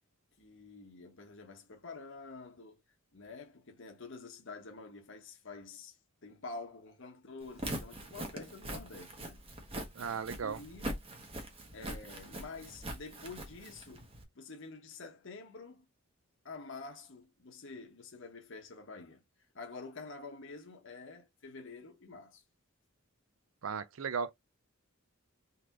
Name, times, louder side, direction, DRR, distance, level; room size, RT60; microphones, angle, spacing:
voice 1, 0.4-2.8 3.1-6.0 6.2-9.4 10.4-10.9 11.7-14.1 14.3-15.9 16.4-19.2 19.5-22.4, left 3 dB, 60° left, 1.1 m, -48 dB
Walk footsteps, 7.4-14.2, right 1 dB, 25° right, 1.1 m, -42 dB
voice 2, 9.9-10.6 23.6-24.3, right 6 dB, 65° right, 0.5 m, -36 dB
4.0 x 3.3 x 2.9 m
head